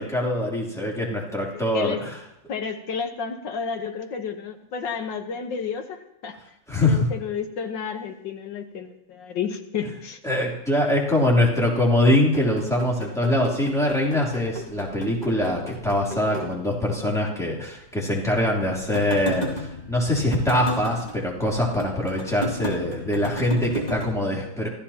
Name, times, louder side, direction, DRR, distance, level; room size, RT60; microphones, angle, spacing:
voice 1, 0.0-2.1 6.7-7.1 10.2-24.7, left 1 dB, ahead, -4 dB, 3.1 m, -23 dB
voice 2, 2.5-6.4 6.8-10.2, left 6 dB, 70° left, 6 dB, 1.8 m, -31 dB
sound 1, 12.2-17.3 17.7-17.8 18.1-24.1, equal, 20° left, 2.3 m, -35 dB
26.5 x 14.5 x 2.9 m, 0.81 s
omnidirectional pair, 2.1 m